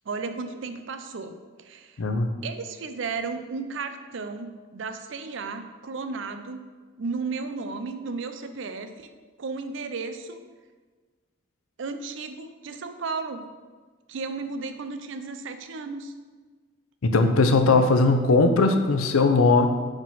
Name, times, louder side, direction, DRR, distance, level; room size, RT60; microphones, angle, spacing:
voice 1, 0.1-2.0 2.4-6.7 7.0-9.1 9.4-10.4 11.8-13.5 14.1-16.1, right 4 dB, 60° right, 8 dB, 0.5 m, -34 dB
voice 2, 2.0-2.3 17.0-19.7, left 3 dB, 90° left, 7 dB, 0.6 m, -19 dB
5.0 x 3.7 x 5.5 m, 1.4 s
head